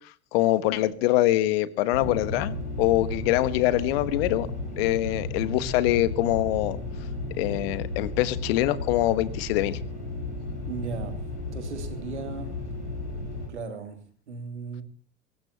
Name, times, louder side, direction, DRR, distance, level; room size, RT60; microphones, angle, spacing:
voice 1, 0.3-4.5 4.8-6.8 7.4-9.8, left 15 dB, 55° left, 16 dB, 1.3 m, -24 dB
sound 1, 1.9-13.5, left 2 dB, 80° left, 5.6 m, -34 dB
voice 2, 10.7-11.2 11.5-12.5 13.5-14.8, right 5 dB, 75° right, 6 dB, 3.0 m, -36 dB
22.5 x 18.5 x 2.9 m, 0.43 s
figure-of-eight pair, 70°, 35 cm